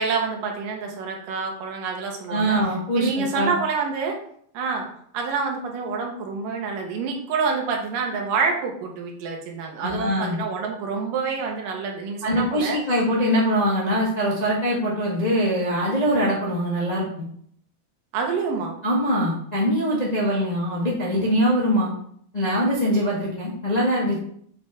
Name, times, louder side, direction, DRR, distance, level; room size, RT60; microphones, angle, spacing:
voice 1, 0.0-2.6 3.0-4.2 4.5-4.9 5.1-12.8 18.1-18.8, right 5 dB, 70° right, 1 dB, 2.7 m, -27 dB
voice 2, 2.3-3.5 9.8-10.4 12.2-17.2 18.8-21.9 22.3-24.2, equal, 45° left, -6 dB, 0.5 m, -23 dB
7.8 x 5.4 x 3.6 m, 0.64 s
omnidirectional pair, 4.2 m